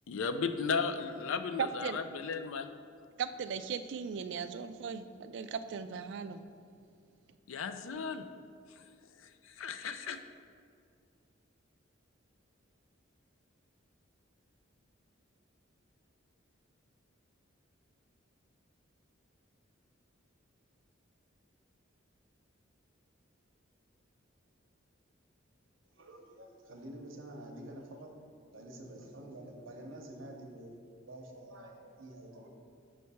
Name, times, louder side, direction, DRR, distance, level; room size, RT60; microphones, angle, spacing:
voice 1, 0.1-2.7 7.5-8.3 9.4-10.2, left 5 dB, 80° left, 9 dB, 0.4 m, -35 dB
voice 2, 1.6-2.0 3.2-6.4, right 6 dB, 60° right, 10 dB, 0.3 m, -37 dB
voice 3, 25.9-28.1 28.5-30.8 31.1-32.5, right 1 dB, 80° right, 2 dB, 0.8 m, -48 dB
6.5 x 3.2 x 5.5 m, 2.3 s
head